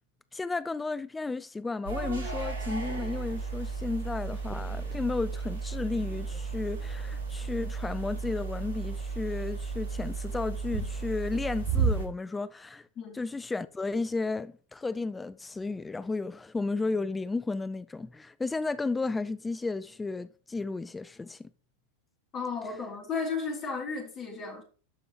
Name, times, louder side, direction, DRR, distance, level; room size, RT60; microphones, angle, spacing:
voice 1, 0.3-12.9 13.1-21.5, left 3 dB, 10° left, 0.4 m, -33 dB
sound 1, 1.9-12.1, right 4 dB, 70° right, 2.0 m, -33 dB
voice 2, 22.3-24.6, left 4 dB, 30° left, 3.4 m, -34 dB
13.0 x 5.4 x 3.0 m
figure-of-eight pair, 90°, 0 cm